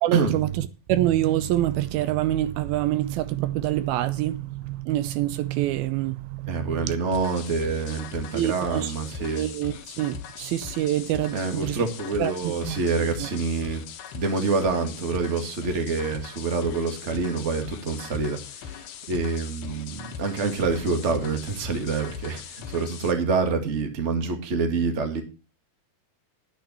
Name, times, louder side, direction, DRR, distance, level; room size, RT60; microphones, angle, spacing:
voice 1, 0.0-7.0 8.3-8.9 9.2-11.8 12.2-12.8 13.2-13.3, right 14 dB, 80° right, 2.4 m, -26 dB
voice 2, 6.5-9.5 11.3-13.8 14.1-18.8 19.1-25.2, right 4 dB, 25° right, 1.6 m, -26 dB
sound 1, 7.1-23.1, left 8 dB, 90° left, 3.4 m, -40 dB
10.5 x 10.5 x 4.4 m
omnidirectional pair, 4.4 m